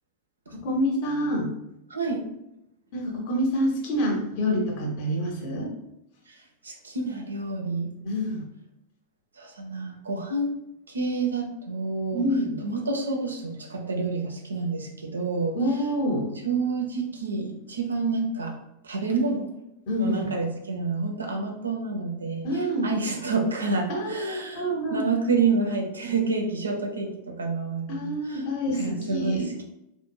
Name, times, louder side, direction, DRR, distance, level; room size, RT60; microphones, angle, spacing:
voice 1, 0.6-1.5 2.9-5.7 8.0-8.4 12.1-12.6 15.5-16.3 19.9-20.3 22.4-22.9 23.9-24.1 24.5-25.1 27.9-29.5, equal, 45° left, 0 dB, 0.8 m, -27 dB
voice 2, 1.9-2.2 6.3-6.4 6.6-7.9 9.4-10.6 10.9-12.3 12.6-15.6 16.4-18.5 18.8-19.5 20.0-24.6 24.9-28.4 28.8-29.6, right 4 dB, 75° right, 2 dB, 0.5 m, -28 dB
2.7 x 2.5 x 2.2 m, 0.83 s
figure-of-eight pair, 90°, 0 cm